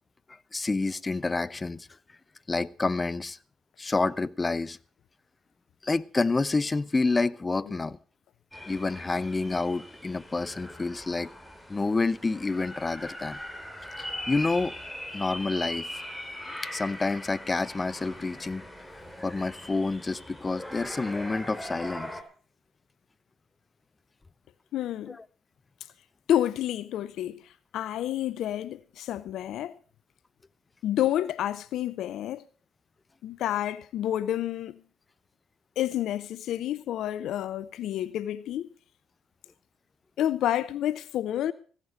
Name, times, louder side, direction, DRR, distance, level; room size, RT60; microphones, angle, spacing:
voice 1, 0.5-1.9 2.5-3.4 3.8-4.8 5.8-8.0 8.7-11.3 11.7-13.4 14.0-14.7 15.1-15.9 16.7-18.6 19.2-22.1, left 3 dB, 25° left, 0.7 m, -28 dB
sound 1, 8.5-22.2, left 1 dB, 5° left, 3.3 m, -40 dB
voice 2, 24.7-25.2 26.3-27.4 27.7-29.8 30.8-32.4 33.2-34.8 35.8-38.7 40.2-41.5, left 12 dB, 70° left, 0.5 m, -29 dB
15.5 x 8.3 x 6.4 m
hypercardioid pair, 50°, 0 cm